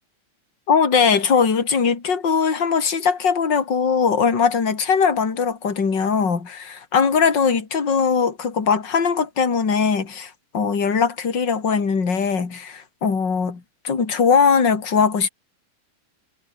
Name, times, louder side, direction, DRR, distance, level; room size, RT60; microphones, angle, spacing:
voice 1, 0.7-15.3, left 6 dB, 30° left, 3.7 m, -20 dB
omnidirectional pair, 4.1 m